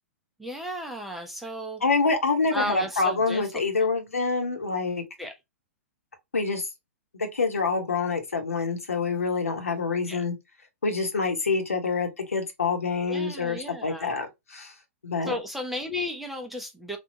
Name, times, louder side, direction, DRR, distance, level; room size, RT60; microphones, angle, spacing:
voice 1, 0.4-1.8 2.5-3.4 3.8-3.9 5.2-5.3 10.1-10.2 13.1-14.1 15.2-17.0, left 1 dB, ahead, 0.5 m, -34 dB
voice 2, 1.8-5.0 6.3-6.7 7.1-10.3 10.8-14.7 15.0-15.3, left 4 dB, 75° left, 1.0 m, -26 dB
3.5 x 2.3 x 2.7 m
figure-of-eight pair, 110°, 8 cm